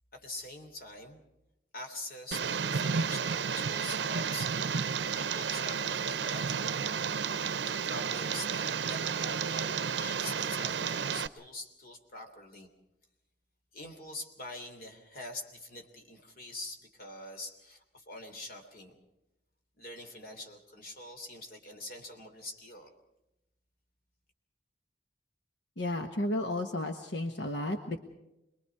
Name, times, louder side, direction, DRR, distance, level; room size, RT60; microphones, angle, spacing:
voice 1, 0.1-1.2 1.7-4.8 5.1-6.7 7.7-12.7 13.7-19.0 19.8-22.9, left 2 dB, 55° left, 4 dB, 3.2 m, -45 dB
Tick, 2.3-11.3, right 6 dB, 75° right, 0.6 m, -32 dB
voice 2, 25.8-28.0, left 1 dB, 70° left, 4 dB, 1.4 m, -33 dB
27.0 x 21.5 x 4.8 m, 0.92 s
head